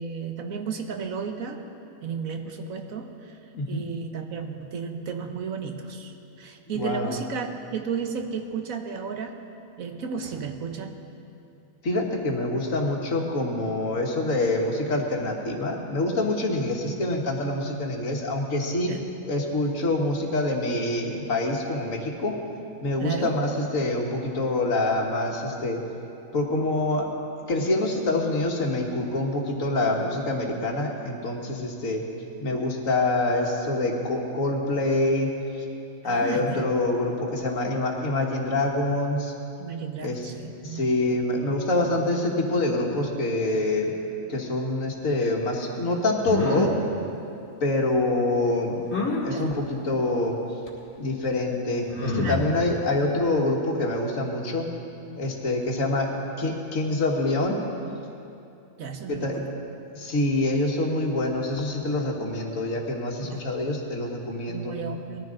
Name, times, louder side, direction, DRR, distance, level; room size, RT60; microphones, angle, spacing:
voice 1, 0.0-1.7 2.0-9.4 9.8-11.0 18.9-19.1 23.0-23.4 36.0-36.7 39.6-40.9 48.5-48.9 49.3-49.6 52.2-52.6 58.8-59.6 63.2-63.4 64.5-65.3, right 6 dB, 85° right, 5 dB, 1.4 m, -33 dB
voice 2, 6.7-7.2 11.8-18.9 19.3-22.4 22.8-25.8 26.3-27.1 27.5-32.0 32.4-35.3 35.6-35.7 36.0-39.3 40.0-40.2 40.6-43.9 44.3-46.8 47.6-48.8 49.2-50.6 51.0-54.7 55.1-57.6 59.1-59.4 59.9-64.7, left 2 dB, 75° left, 1 dB, 1.9 m, -26 dB
sound 1, 46.2-46.7 48.9-49.2 50.7-50.8 51.9-52.5, left 3 dB, 50° left, 2.4 m, -27 dB
20.0 x 13.5 x 3.8 m, 2.7 s
omnidirectional pair, 1.4 m